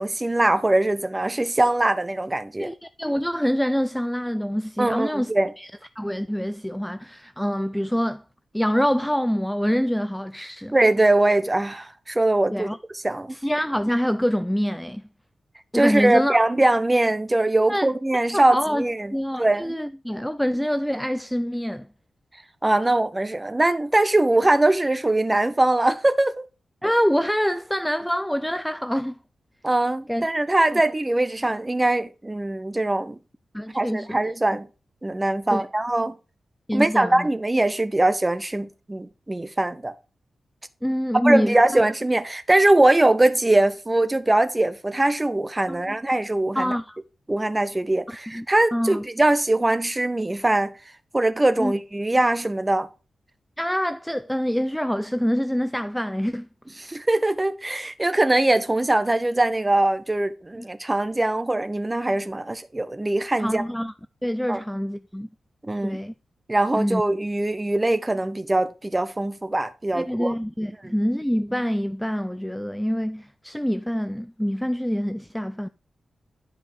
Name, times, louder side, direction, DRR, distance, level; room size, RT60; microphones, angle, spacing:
voice 1, 0.0-2.7 4.8-5.5 10.7-12.7 13.0-13.3 15.7-19.7 22.6-26.4 29.6-33.2 33.7-34.7 35.0-36.1 36.7-39.9 41.2-46.7 47.3-50.7 51.1-52.9 56.8-63.6 64.5-64.6 65.7-66.0 66.5-70.3 70.8-70.9, right 2 dB, 15° right, 0.7 m, -22 dB
voice 2, 2.6-5.7 6.0-8.2 8.5-10.8 12.5-12.8 13.3-15.0 15.7-16.4 17.7-17.9 18.3-18.9 19.1-21.9 26.8-29.2 30.1-30.3 30.7-30.8 33.5-34.2 35.5-35.6 36.7-37.3 40.8-41.8 45.7-46.0 46.6-47.0 48.1-48.5 48.7-49.0 51.6-51.7 53.6-56.5 60.6-60.7 63.4-63.9 64.2-65.3 65.8-66.1 66.8-67.0 69.9-75.7, equal, ahead, 0.3 m, -25 dB
11.5 x 5.1 x 3.3 m
wide cardioid pair, 180°, 0 cm